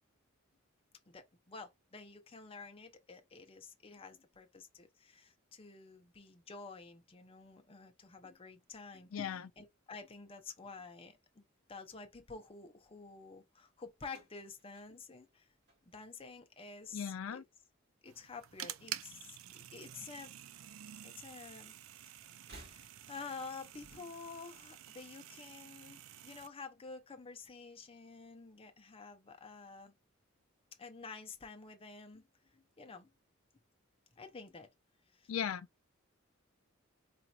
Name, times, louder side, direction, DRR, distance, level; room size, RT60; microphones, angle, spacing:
voice 1, 1.1-11.4 11.7-15.5 15.8-17.5 18.0-20.3 21.0-21.7 22.0-22.3 22.6-29.9 30.8-32.3 32.5-33.1 34.2-34.7 35.1-35.3, left 4 dB, 30° left, 0.6 m, -50 dB
sound 1, 14.0-16.4 16.7-17.3 18.3-19.3 19.6-19.7 20.8-20.9 22.3-23.3, right 1 dB, 55° right, 2.2 m, -59 dB
voice 2, 16.9-17.4 35.3-35.7, left 8 dB, 85° left, 0.4 m, -37 dB
sound 2, 18.0-26.5, right 12 dB, 80° right, 0.4 m, -49 dB
4.1 x 2.8 x 2.4 m
head